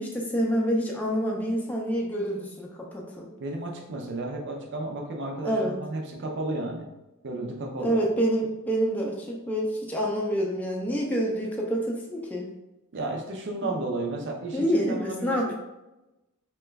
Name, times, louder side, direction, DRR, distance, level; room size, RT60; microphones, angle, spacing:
voice 1, 0.0-3.3 5.4-5.8 7.8-12.5 13.6-13.7 14.5-15.5, equal, 5° left, -2 dB, 0.4 m, -27 dB
voice 2, 3.4-6.9 7.2-8.0 12.9-15.5, right 2 dB, 55° right, 1 dB, 0.5 m, -33 dB
2.9 x 2.2 x 3.3 m, 1.0 s
head